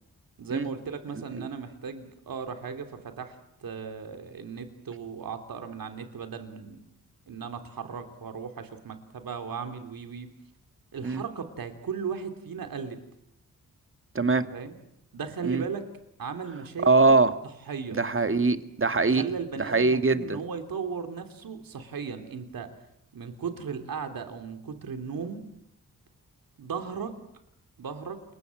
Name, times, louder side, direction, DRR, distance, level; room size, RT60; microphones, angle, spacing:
voice 1, 0.4-3.3 3.6-6.8 7.3-10.3 10.9-13.0 14.2-14.8 15.1-15.9 16.2-17.2 17.7-18.0 19.1-22.7 23.1-25.5 26.6-27.2 27.8-28.2, right 6 dB, 75° right, 7 dB, 3.2 m, -36 dB
voice 2, 14.1-14.5 15.4-15.6 16.8-17.4 17.9-19.2 19.6-20.4, right 3 dB, 35° right, 9 dB, 2.0 m, -22 dB
28.5 x 22.0 x 7.8 m, 0.75 s
cardioid pair, 60°, 35 cm